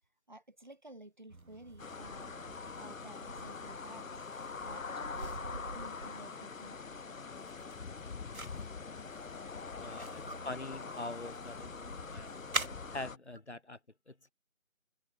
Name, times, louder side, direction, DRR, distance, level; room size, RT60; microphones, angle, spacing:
voice 1, 0.3-2.3 2.8-4.2 4.6-6.8 8.5-8.9 9.7-10.4, right 1 dB, 35° right, 2.6 m, -53 dB
sound 1, 1.3-13.0, right 2 dB, 75° right, 2.3 m, -46 dB
sound 2, 1.8-13.2, left 5 dB, 70° left, 0.8 m, -44 dB
voice 2, 9.8-12.5 12.9-13.8 14.1-14.3, left 2 dB, 55° left, 1.6 m, -44 dB
figure-of-eight pair, 175°, 42 cm